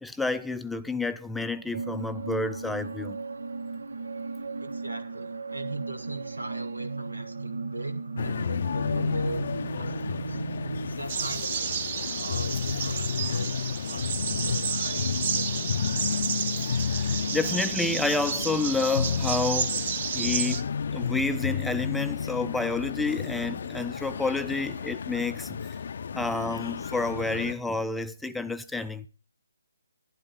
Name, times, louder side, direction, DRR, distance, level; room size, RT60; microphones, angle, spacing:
voice 1, 0.0-3.2 16.6-19.8 20.1-20.7 20.9-25.8 26.1-29.1, left 3 dB, ahead, 0.5 m, -30 dB
sound 1, 1.7-11.0, right 3 dB, 70° right, 0.9 m, -35 dB
voice 2, 4.6-9.4 9.8-10.4 10.8-15.8, right 2 dB, 85° right, 2.0 m, -40 dB
sound 2, 8.2-27.5, left 6 dB, 50° left, 0.5 m, -31 dB
sound 3, 11.1-20.6, right 7 dB, 40° right, 1.0 m, -31 dB
11.5 x 11.5 x 4.0 m
figure-of-eight pair, 145°, 0 cm